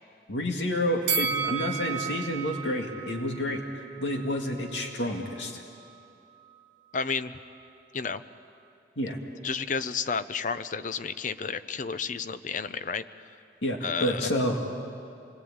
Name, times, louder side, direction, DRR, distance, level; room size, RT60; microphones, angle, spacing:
voice 1, 0.3-5.6 9.0-9.2 13.6-14.6, equal, 80° left, 2 dB, 2.2 m, -29 dB
Bell, 1.1-4.3 4.6-4.7, right 7 dB, 65° right, 1.2 m, -32 dB
voice 2, 6.9-7.3 7.9-8.2 9.4-13.0 13.8-14.3, left 5 dB, 45° left, 12 dB, 0.7 m, -31 dB
27.0 x 21.0 x 8.7 m, 2.6 s
head